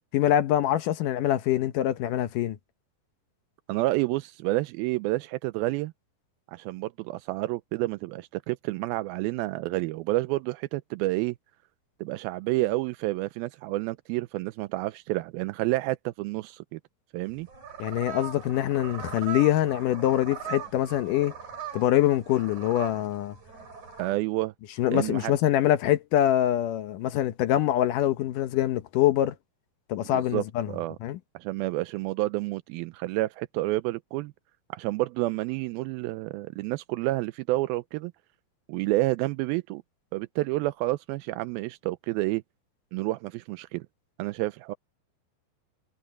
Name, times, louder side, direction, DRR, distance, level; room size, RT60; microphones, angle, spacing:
voice 1, 0.1-2.6 17.8-21.3 21.7-23.4 24.8-29.4 29.9-30.7 31.0-31.2, left 12 dB, 70° left, 2.3 m, -24 dB
voice 2, 3.7-5.9 6.5-11.4 12.0-16.8 17.1-17.5 24.0-24.5 24.9-25.3 30.1-31.0 31.3-34.3 34.7-38.1 38.7-39.8 40.1-42.4 42.9-43.8 44.2-44.7, right 19 dB, 85° right, 2.4 m, -29 dB
sound 1, 17.2-24.2, right 8 dB, 50° right, 9.4 m, -40 dB
omnidirectional pair, 4.3 m